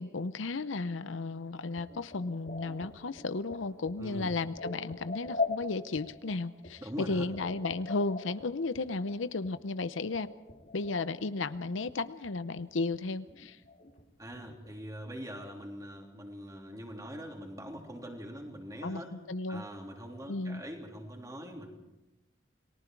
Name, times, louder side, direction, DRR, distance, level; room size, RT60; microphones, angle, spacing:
voice 1, 0.0-10.3 10.7-13.6 18.8-19.6 20.3-20.6, left 3 dB, 75° left, 13 dB, 0.7 m, -34 dB
sound 1, 1.8-11.2 11.5-12.3 12.5-14.8, left 3 dB, 45° left, 2.3 m, -42 dB
voice 2, 4.0-4.4 6.8-7.3 14.2-19.1 19.5-21.7, equal, 20° right, 1 dB, 3.3 m, -43 dB
29.5 x 19.5 x 4.6 m, 0.95 s
head